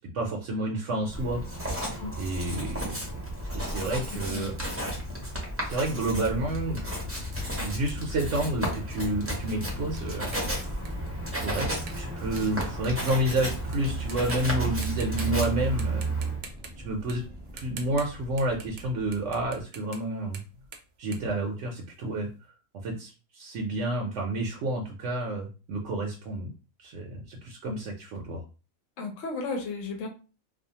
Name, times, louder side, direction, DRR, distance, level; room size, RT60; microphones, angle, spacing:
voice 1, 0.1-1.4 2.2-2.9 3.5-4.5 5.6-6.8 7.6-10.3 11.4-16.1 16.8-17.2 17.5-20.4 21.0-22.3 22.7-26.5 26.8-28.4, right 1 dB, 70° right, 0 dB, 0.8 m, -30 dB
Writing, 1.0-16.4, right 1 dB, 15° right, 0.5 m, -33 dB
voice 2, 3.9-4.5 29.0-30.1, left 3 dB, 70° left, 3 dB, 1.0 m, -35 dB
sound 1, 6.1-19.6, left 3 dB, 25° left, 0.7 m, -43 dB
sound 2, 8.9-13.8 14.1-14.5 14.8-15.5 15.8-18.9 19.1-22.1, right 5 dB, 85° right, 0.4 m, -46 dB
2.4 x 2.3 x 2.7 m, 0.34 s
omnidirectional pair, 1.4 m